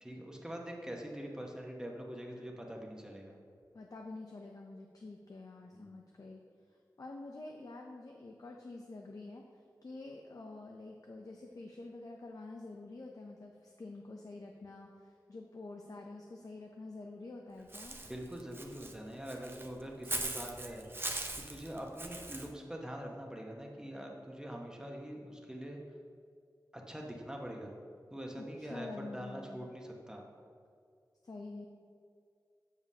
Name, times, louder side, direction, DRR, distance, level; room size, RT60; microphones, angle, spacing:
voice 1, 0.0-3.3 5.7-5.9 18.0-20.9 21.4-25.8 26.7-27.8 28.1-28.9 29.1-30.2, equal, 10° right, 0 dB, 1.0 m, -44 dB
voice 2, 3.7-6.4 7.0-9.4 9.8-18.0 28.3-29.7 31.2-31.7, left 2 dB, 55° left, 1 dB, 0.5 m, -47 dB
Walk footsteps / Bird, 17.7-22.5, right 2 dB, 30° right, 0.5 m, -41 dB
7.3 x 6.8 x 2.7 m, 2.3 s
wide cardioid pair, 75°, 8 cm